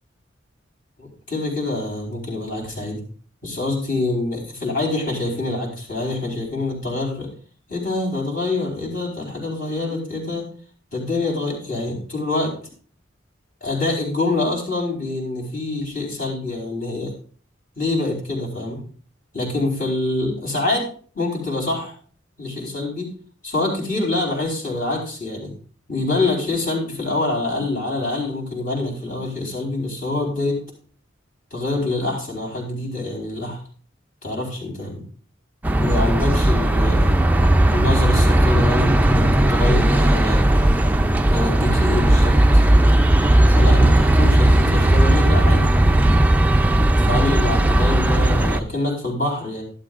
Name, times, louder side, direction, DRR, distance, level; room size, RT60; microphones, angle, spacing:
voice 1, 1.0-3.0 3.4-7.3 7.7-10.5 10.9-12.5 13.6-17.1 17.8-18.8 19.3-20.9 21.1-21.9 22.4-23.1 23.4-25.5 25.9-30.6 31.5-33.6 34.2-35.0 35.8-37.2 37.7-40.5 41.3-42.7 43.5-45.7 47.0-49.6, left 2 dB, 45° left, -1 dB, 4.0 m, -25 dB
sound 1, 35.6-48.6, right 1 dB, 10° right, 0.4 m, -16 dB
12.0 x 11.5 x 2.5 m, 0.43 s
head